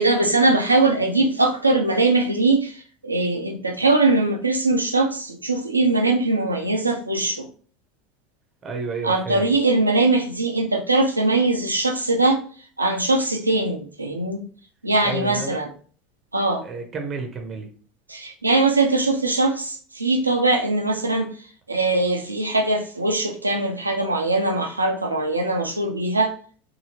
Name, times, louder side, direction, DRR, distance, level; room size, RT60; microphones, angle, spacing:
voice 1, 0.0-2.7 3.0-7.5 9.0-12.4 12.8-14.4 14.8-15.7 16.3-16.6 18.1-21.3 21.7-26.3, right 2 dB, 85° right, 4 dB, 0.4 m, -21 dB
voice 2, 8.6-9.6 15.0-15.6 16.6-17.7, right 3 dB, 30° right, 4 dB, 0.7 m, -31 dB
2.7 x 2.7 x 2.9 m, 0.43 s
figure-of-eight pair, 70°, 0 cm